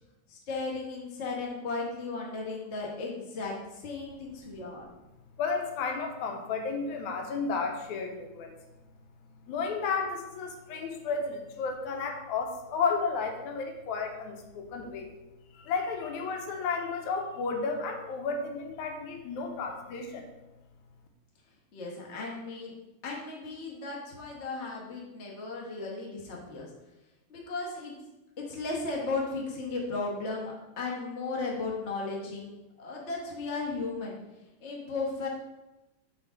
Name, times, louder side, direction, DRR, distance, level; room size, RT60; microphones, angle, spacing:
voice 1, 0.3-4.9 21.7-22.7 23.0-26.7 27.3-27.9 28.4-34.2 34.6-35.3, left 3 dB, 65° left, -3 dB, 0.6 m, -35 dB
voice 2, 5.4-8.5 9.5-15.1 15.5-20.3, left 4 dB, 90° left, 4 dB, 2.1 m, -32 dB
5.0 x 4.0 x 5.7 m, 1.0 s
omnidirectional pair, 3.3 m